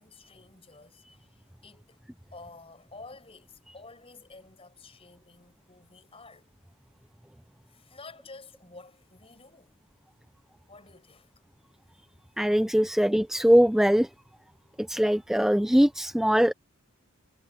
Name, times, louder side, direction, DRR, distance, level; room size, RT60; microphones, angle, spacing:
voice 1, 0.0-2.0 2.3-6.5 7.7-9.8 10.7-11.3 12.9-13.0, left 3 dB, 25° left, 6.5 m, -50 dB
voice 2, 12.4-14.1 14.8-16.5, equal, ahead, 0.3 m, -21 dB
head